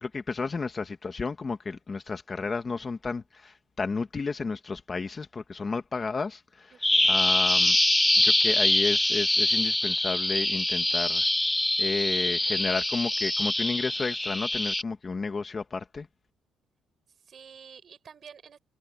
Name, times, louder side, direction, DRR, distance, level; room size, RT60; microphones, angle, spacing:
voice 1, 0.0-6.8 7.1-7.8 8.1-11.3 11.8-16.1, left 4 dB, 25° left, 1.3 m, -32 dB
voice 2, 6.7-7.2 17.1-18.6, right 7 dB, 40° right, 5.7 m, -50 dB
Bird vocalization bird call bird song, 6.8-14.8, left 1 dB, 5° left, 0.4 m, -24 dB
cardioid pair, 165°, 0 cm